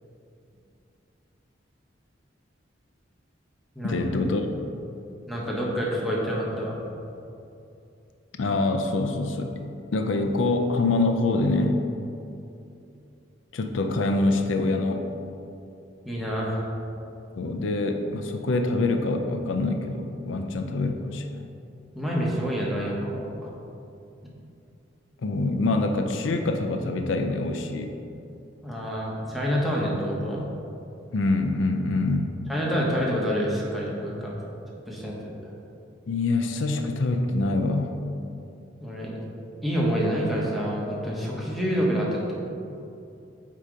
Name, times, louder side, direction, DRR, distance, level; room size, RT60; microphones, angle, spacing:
voice 1, 3.8-4.5 8.4-9.7 9.9-11.9 13.5-15.1 17.4-21.4 25.2-28.0 31.1-32.4 36.1-38.0, left 2 dB, 85° left, 5 dB, 0.5 m, -25 dB
voice 2, 5.3-6.8 16.0-16.6 21.9-23.5 28.6-30.4 32.5-34.3 34.9-35.3 38.8-39.1 39.6-42.3, equal, ahead, -5 dB, 1.0 m, -27 dB
8.3 x 2.9 x 5.0 m, 2.7 s
head